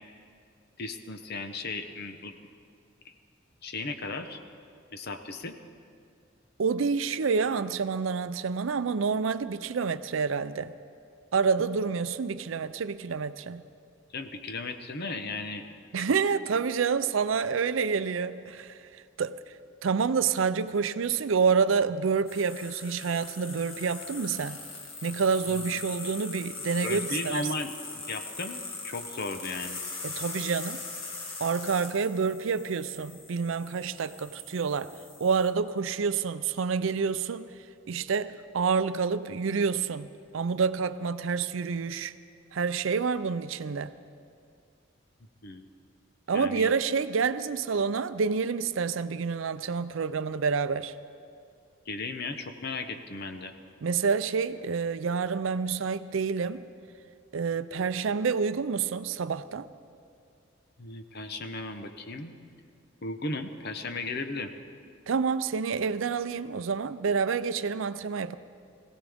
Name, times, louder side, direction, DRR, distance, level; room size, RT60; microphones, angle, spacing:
voice 1, 0.8-2.3 3.0-3.1 3.6-4.4 4.9-5.5 14.1-15.7 16.0-16.1 25.5-25.6 26.8-27.7 28.1-29.8 45.4-45.7 46.3-46.7 51.9-53.5 60.8-62.3 63.0-64.5, left 3 dB, 55° left, 8 dB, 0.9 m, -36 dB
voice 2, 6.6-10.7 11.3-13.6 15.9-18.8 19.2-19.4 19.8-24.6 25.0-27.5 30.0-30.8 31.4-34.9 35.2-37.4 37.9-42.1 42.5-43.9 46.3-50.9 53.8-56.6 57.3-59.7 65.1-68.4, right 5 dB, 75° right, 13 dB, 0.5 m, -28 dB
sound 1, 22.3-35.5, left 3 dB, 75° left, 2.0 m, -41 dB
21.5 x 16.5 x 3.5 m, 2.3 s
head